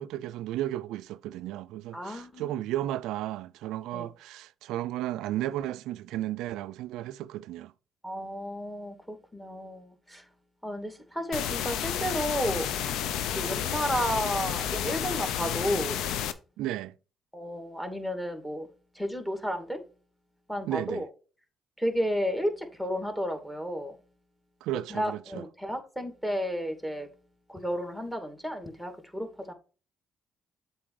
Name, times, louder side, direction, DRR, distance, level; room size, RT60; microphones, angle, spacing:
voice 1, 0.0-7.7 16.6-16.9 20.7-21.0 24.6-25.5, right 13 dB, 80° right, 0.3 m, -34 dB
voice 2, 1.9-2.5 3.9-4.1 8.0-10.2 10.6-12.7 13.3-16.0 17.3-18.7 19.0-19.8 20.5-21.1 21.8-24.0 24.9-27.1 27.5-29.5, equal, 5° left, 2.3 m, -32 dB
sound 1, 11.3-16.3, left 10 dB, 80° left, 0.7 m, -31 dB
7.7 x 4.1 x 4.8 m
supercardioid pair, 65°, 0 cm